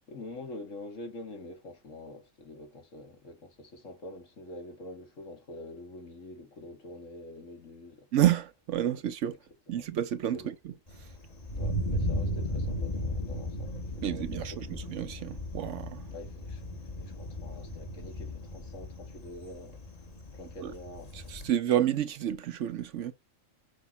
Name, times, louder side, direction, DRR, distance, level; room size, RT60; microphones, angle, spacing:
voice 1, 0.1-8.1 9.7-9.9 10.3-10.5 11.5-14.9 16.1-19.8 20.3-21.3, left 2 dB, 70° left, 2.1 m, -46 dB
voice 2, 8.1-9.4 9.7-10.7 14.0-16.0 20.6-20.7 21.3-23.1, right 11 dB, 70° right, 1.0 m, -29 dB
Thunder, 10.9-21.5, equal, 30° left, 1.2 m, -36 dB
6.3 x 5.2 x 4.1 m
omnidirectional pair, 1.4 m